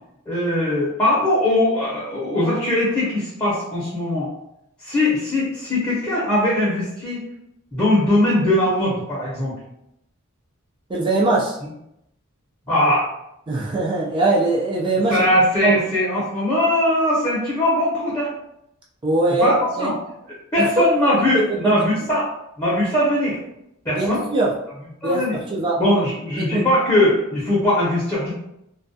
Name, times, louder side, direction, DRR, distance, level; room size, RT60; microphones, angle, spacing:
voice 1, 0.3-4.3 4.8-7.2 7.7-9.6 12.7-13.1 15.1-18.3 19.4-19.9 20.5-22.3 22.6-23.4 23.8-24.2 25.0-25.4 25.8-28.3, left 1 dB, 15° left, -9 dB, 0.7 m, -20 dB
voice 2, 10.9-11.6 13.5-15.3 15.6-15.8 19.0-19.9 20.6-20.8 21.3-21.7 23.9-24.5 25.0-25.8 26.4-26.6, right 2 dB, 20° right, -3 dB, 0.3 m, -21 dB
2.3 x 2.2 x 2.6 m, 0.80 s
head